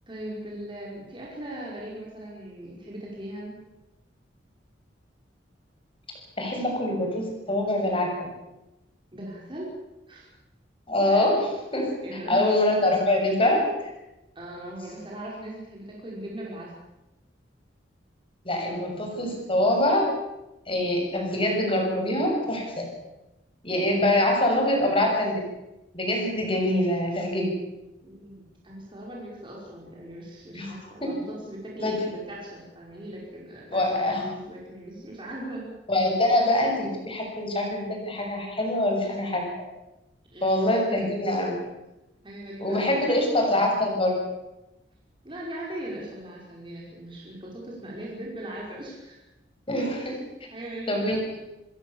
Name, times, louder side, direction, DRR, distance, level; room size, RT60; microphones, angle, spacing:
voice 1, 0.1-3.6 9.1-9.7 10.1-10.3 11.1-11.3 12.0-12.5 14.4-16.7 18.7-19.3 24.1-24.3 28.0-35.7 40.3-41.1 42.2-43.2 45.2-49.2 49.7-49.9 50.4-51.3, right 1 dB, 30° right, -4 dB, 5.5 m, -39 dB
voice 2, 6.4-8.1 10.9-11.9 12.3-13.7 18.5-20.1 20.7-22.9 23.6-25.3 25.9-27.5 30.5-30.8 31.0-31.1 31.8-32.1 33.7-34.3 35.9-39.4 40.4-41.5 42.6-44.2 49.7-50.2 50.9-51.4, left 1 dB, 30° left, 1 dB, 7.0 m, -24 dB
28.5 x 16.5 x 7.3 m, 0.97 s
head